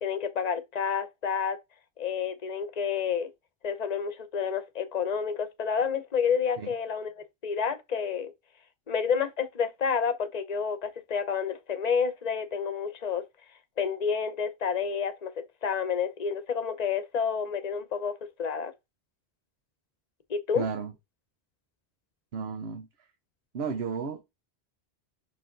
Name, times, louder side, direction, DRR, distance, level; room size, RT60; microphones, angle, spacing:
voice 1, 0.0-1.6 2.0-3.3 3.6-8.3 8.9-13.2 13.8-18.1 18.4-18.7 20.3-20.6, left 6 dB, 40° left, 0.9 m, -29 dB
voice 2, 20.5-20.9 22.3-23.1 23.5-24.2, right 5 dB, 70° right, 1.1 m, -33 dB
5.8 x 4.8 x 3.9 m
omnidirectional pair, 1.1 m